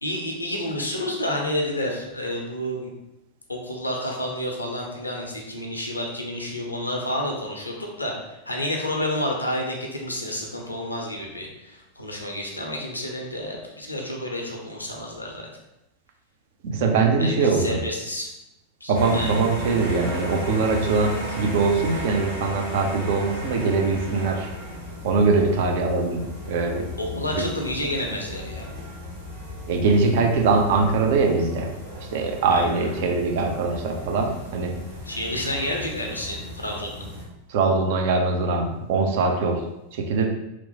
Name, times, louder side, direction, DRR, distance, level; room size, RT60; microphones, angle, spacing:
voice 1, 0.0-2.9 3.5-15.5 17.2-18.3 18.8-19.5 27.0-28.7 32.5-32.9 35.0-37.1, left 1 dB, 85° left, 0 dB, 0.5 m, -30 dB
voice 2, 16.6-17.8 18.9-24.5 25.0-26.8 27.3-27.4 29.7-31.7 32.1-34.7 37.5-39.6 39.9-40.3, right 4 dB, 50° right, 2 dB, 0.4 m, -22 dB
sound 1, 18.9-37.2, equal, 85° right, 1.0 m, -36 dB
2.9 x 2.0 x 2.8 m, 0.91 s
figure-of-eight pair, 90°, 0 cm